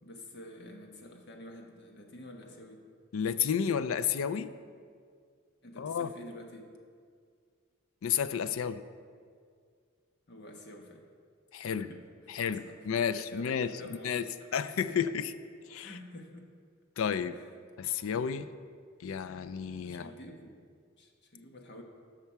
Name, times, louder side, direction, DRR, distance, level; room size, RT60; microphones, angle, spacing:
voice 1, 0.0-2.8 5.6-6.7 10.3-11.0 11.6-13.1 13.3-14.1 14.9-15.0 15.8-16.5 17.3-17.5 19.8-20.6 21.0-21.8, left 1 dB, 55° left, 3 dB, 1.1 m, -49 dB
voice 2, 3.1-4.5 5.8-6.1 8.0-8.8 11.5-11.9 12.3-14.3 14.5-15.3 15.7-15.9 17.0-17.4 17.8-18.5 19.0-20.1, left 7 dB, 70° left, 12 dB, 0.4 m, -31 dB
12.5 x 5.7 x 4.6 m, 2.1 s
head